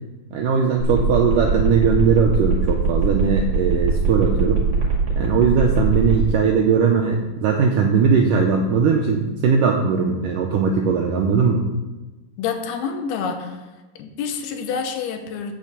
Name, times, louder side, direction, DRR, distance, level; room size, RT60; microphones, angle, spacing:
voice 1, 0.3-4.6 5.2-11.6, right 5 dB, 80° right, 2 dB, 1.9 m, -19 dB
sound 1, 0.8-6.2, right 5 dB, 45° right, 2.9 m, -21 dB
voice 2, 12.4-13.7 14.0-15.5, left 6 dB, 80° left, 5 dB, 2.8 m, -28 dB
8.5 x 6.6 x 6.9 m, 1.1 s
omnidirectional pair, 4.7 m